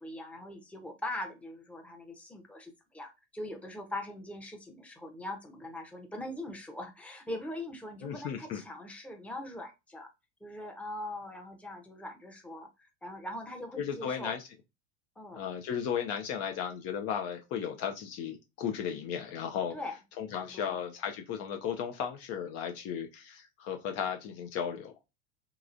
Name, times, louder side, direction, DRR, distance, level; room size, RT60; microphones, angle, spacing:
voice 1, 0.0-10.1 10.4-12.7 13.0-14.3 15.2-15.4 19.7-20.0 20.3-20.8, left 1 dB, 5° left, 0.7 m, -41 dB
voice 2, 8.0-8.6 13.8-14.5 15.3-19.8 20.2-24.9, left 8 dB, 45° left, 0.5 m, -35 dB
2.9 x 2.4 x 2.5 m
hypercardioid pair, 85°, 36 cm